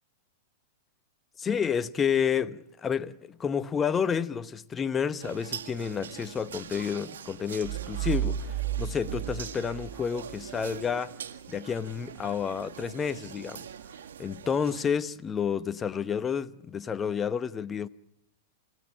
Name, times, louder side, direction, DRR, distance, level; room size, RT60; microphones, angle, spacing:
voice 1, 1.4-11.1 11.5-13.7 14.2-17.9, left 7 dB, 20° left, 0.9 m, -30 dB
sound 1, 5.2-14.8, right 8 dB, 80° right, 1.7 m, -43 dB
sound 2, 7.6-10.4, right 11 dB, 50° right, 1.5 m, -32 dB
29.5 x 16.0 x 8.7 m
hypercardioid pair, 110°, 0 cm